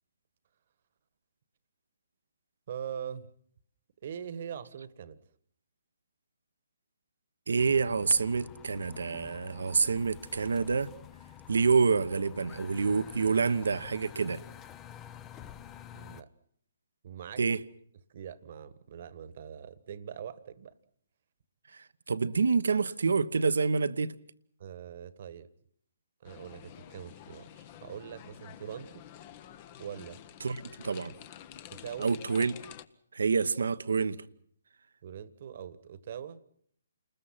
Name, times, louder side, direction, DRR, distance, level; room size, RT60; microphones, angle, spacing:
voice 1, 2.7-3.3 4.0-5.2 15.9-16.3 17.0-17.4 18.1-20.7 24.6-25.5 26.2-29.0 29.8-30.2 31.7-32.1 35.0-36.4, right 8 dB, 50° right, 1.5 m, -42 dB
voice 2, 7.5-10.9 11.5-14.4 17.4-17.6 21.7-24.2 30.4-30.6 30.8-31.1 32.0-32.5 33.1-34.2, right 5 dB, 70° right, 1.1 m, -27 dB
sound 1, 7.6-16.2, left 10 dB, 20° left, 0.9 m, -49 dB
sound 2, 26.2-32.9, left 10 dB, 35° left, 1.2 m, -49 dB
29.5 x 20.5 x 5.8 m
figure-of-eight pair, 140°, 0 cm